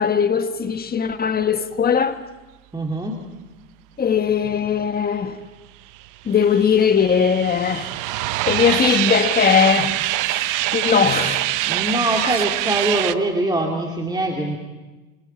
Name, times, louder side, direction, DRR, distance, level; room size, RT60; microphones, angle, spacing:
voice 1, 0.0-2.2 4.0-5.4 6.2-7.9 8.4-11.6, left 7 dB, 20° left, 1.5 m, -20 dB
voice 2, 2.7-3.2 11.6-14.6, right 1 dB, 10° right, 2.6 m, -23 dB
sound 1, 6.0-13.1, right 16 dB, 45° right, 1.0 m, -24 dB
29.0 x 26.0 x 4.5 m
hypercardioid pair, 105°, 43 cm